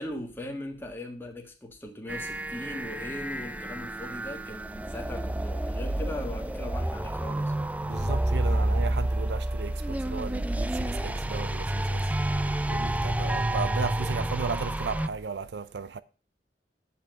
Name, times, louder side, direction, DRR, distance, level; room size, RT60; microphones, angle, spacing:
voice 1, 0.0-7.7, left 1 dB, 15° left, 1.6 m, -39 dB
sound 1, 2.1-15.1, right 1 dB, 10° right, 0.4 m, -29 dB
voice 2, 7.8-12.1 12.7-16.0, right 5 dB, 75° right, 0.5 m, -35 dB
8.5 x 5.5 x 7.6 m
head